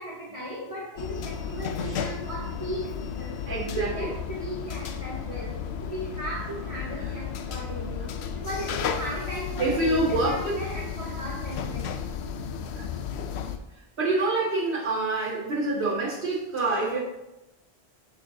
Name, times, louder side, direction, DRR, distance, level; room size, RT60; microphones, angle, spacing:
voice 1, 0.0-3.4 3.7-11.9, equal, 30° right, -7 dB, 1.4 m, -36 dB
sound 1, 1.0-13.6, left 7 dB, 80° left, 0.8 m, -33 dB
voice 2, 3.5-4.1 9.6-10.6 12.7-12.9 14.0-17.0, right 2 dB, 60° right, -10 dB, 2.1 m, -26 dB
8.4 x 6.3 x 2.8 m, 0.93 s
omnidirectional pair, 1.1 m